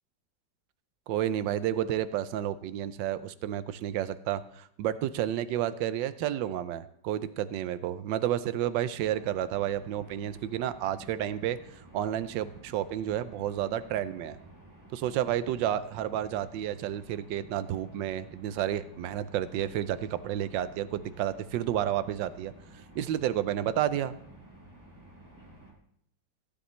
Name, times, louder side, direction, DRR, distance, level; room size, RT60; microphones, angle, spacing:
voice 1, 1.1-11.6 11.9-14.4 14.9-22.5 22.9-24.1, right 11 dB, 85° right, 13 dB, 1.3 m, -31 dB
sound 1, 9.0-25.7, right 1 dB, 10° right, 2.1 m, -53 dB
15.5 x 10.0 x 3.1 m, 0.70 s
omnidirectional pair, 1.9 m